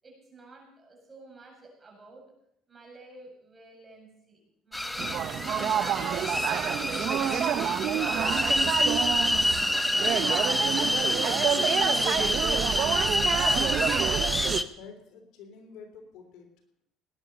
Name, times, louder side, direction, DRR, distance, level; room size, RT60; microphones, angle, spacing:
voice 1, 0.0-2.3 2.7-5.5 6.1-6.7 7.0-9.8, right 3 dB, 25° right, -1 dB, 7.5 m, -51 dB
sound 1, 4.7-14.6, left 1 dB, 5° left, 1.0 m, -27 dB
sound 2, 5.0-14.6, right 10 dB, 55° right, 0.9 m, -28 dB
voice 2, 11.6-13.3 13.5-13.9 14.8-16.5, left 5 dB, 70° left, 5 dB, 3.3 m, -49 dB
19.0 x 10.0 x 6.8 m, 0.74 s
cardioid pair, 110°, 0 cm